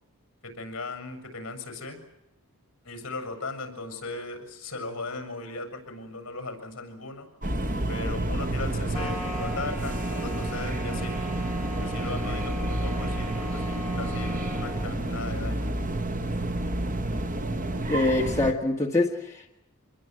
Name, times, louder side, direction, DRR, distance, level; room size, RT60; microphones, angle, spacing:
voice 1, 0.4-2.0 2.8-7.3 7.9-11.1 11.8-15.8, left 3 dB, 55° left, 8 dB, 7.3 m, -37 dB
sound 1, 7.4-18.5, right 1 dB, 35° right, 1.2 m, -29 dB
sound 2, 8.9-14.9, left 1 dB, ahead, 5.3 m, -40 dB
voice 2, 17.9-19.5, left 2 dB, 15° left, -1 dB, 1.9 m, -25 dB
26.5 x 22.0 x 9.1 m, 0.87 s
head